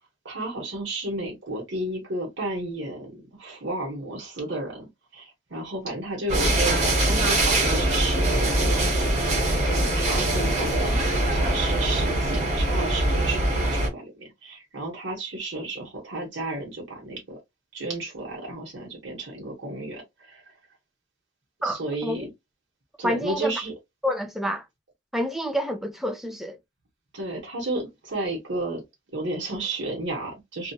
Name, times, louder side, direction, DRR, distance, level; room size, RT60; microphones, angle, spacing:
voice 1, 0.2-8.8 9.4-17.4 17.7-20.4 21.6-22.3 23.0-23.7 27.1-28.8 29.1-30.7, right 2 dB, 75° right, 1.1 m, -32 dB
sound 1, 6.3-13.9, right 1 dB, 35° right, 1.1 m, -23 dB
voice 2, 21.6-22.3 23.0-23.6 24.0-24.6 25.1-26.6, equal, ahead, 0.5 m, -28 dB
2.8 x 2.3 x 2.2 m
head